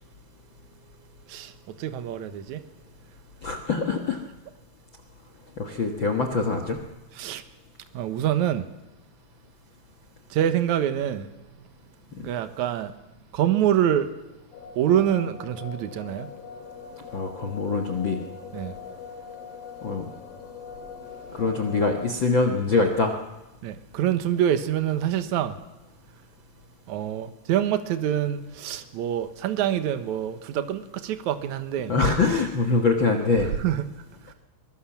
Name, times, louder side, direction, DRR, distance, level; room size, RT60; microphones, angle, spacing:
voice 1, 1.3-2.6 7.1-7.4 7.9-8.7 10.3-11.3 12.1-12.9 13.3-14.1 14.8-16.3 18.5-18.7 23.6-25.6 26.9-31.9 33.4-34.3, right 10 dB, 65° right, 2.0 m, -26 dB
voice 2, 3.4-4.2 5.6-6.8 12.2-12.3 17.1-18.2 19.8-20.0 21.3-23.1 31.9-33.5, left 3 dB, 60° left, 1.2 m, -24 dB
sound 1, 14.5-22.0, left 6 dB, 85° left, 5.0 m, -42 dB
23.5 x 19.5 x 7.3 m
omnidirectional pair, 4.8 m